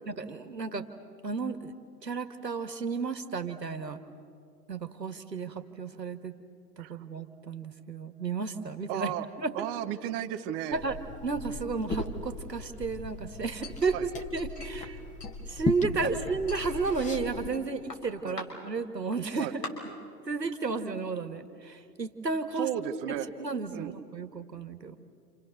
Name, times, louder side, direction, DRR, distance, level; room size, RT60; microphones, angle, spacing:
voice 1, 0.1-0.9 1.2-1.7 2.0-4.0 4.7-6.3 6.8-9.5 10.7-11.0 11.2-14.0 14.3-15.0 15.5-19.5 20.3-22.7 23.1-25.0, right 4 dB, 85° right, 8 dB, 2.0 m, -33 dB
voice 2, 8.9-9.3 9.5-10.8 11.5-11.6 13.9-14.1 16.0-16.1 18.2-18.4 19.4-19.5 22.5-23.3 23.7-24.0, right 11 dB, 35° right, 9 dB, 1.4 m, -34 dB
Liquid, 10.7-17.5, left 3 dB, 15° left, 2.0 m, -37 dB
Chink clink, 13.6-14.9 15.2-16.0 16.5-17.6 17.9-18.5 19.1-19.2 19.6-19.7, left 2 dB, 85° left, 6.0 m, -43 dB
29.5 x 28.5 x 6.6 m, 2.5 s
figure-of-eight pair, 105°, 48 cm